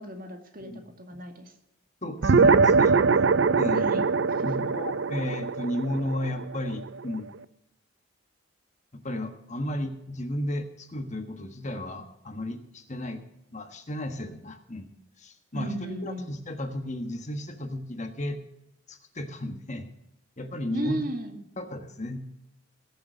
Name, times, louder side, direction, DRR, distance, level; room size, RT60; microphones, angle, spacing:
voice 1, 0.0-0.7 1.0-1.5 3.7-4.0 4.4-4.5 15.5-16.3 20.7-21.4, right 1 dB, 40° right, 5 dB, 1.9 m, -34 dB
voice 2, 2.0-3.0 3.5-3.8 4.4-7.3 8.9-13.2 13.5-14.9 15.2-15.7 16.0-18.4 18.9-19.9 20.4-21.1 21.6-22.2, left 1 dB, 35° left, 7 dB, 1.3 m, -33 dB
sound 1, 2.2-7.0, right 4 dB, 60° right, 0.5 m, -22 dB
19.5 x 7.1 x 6.5 m, 0.86 s
head